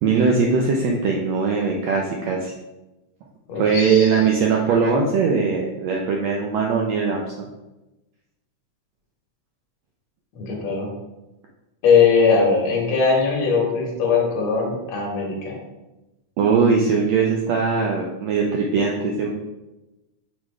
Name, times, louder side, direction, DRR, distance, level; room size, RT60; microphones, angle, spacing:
voice 1, 0.0-2.5 3.6-7.2 16.4-19.3, right 5 dB, 90° right, 0 dB, 1.5 m, -20 dB
voice 2, 3.5-4.2 10.3-10.9 11.8-15.6, left 5 dB, 60° left, -1 dB, 2.1 m, -20 dB
6.2 x 3.2 x 4.7 m, 1.0 s
omnidirectional pair, 3.8 m